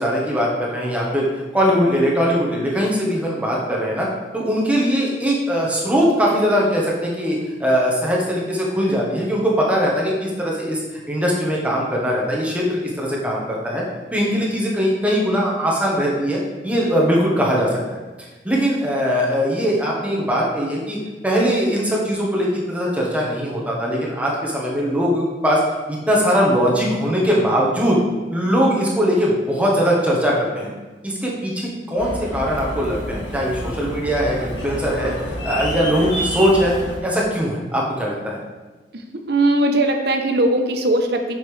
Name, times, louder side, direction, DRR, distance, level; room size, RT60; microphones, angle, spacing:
voice 1, 0.0-4.1 4.3-10.8 11.1-13.8 14.1-18.0 18.4-21.0 21.2-25.6 25.9-28.0 28.3-30.7 31.0-35.1 35.4-38.4, equal, 10° right, -4 dB, 1.3 m, -20 dB
sound 1, 32.0-37.0, equal, 85° left, 1.8 m, -29 dB
voice 2, 39.3-41.3, right 1 dB, 65° right, 4 dB, 0.9 m, -19 dB
7.8 x 6.7 x 3.4 m, 1.2 s
head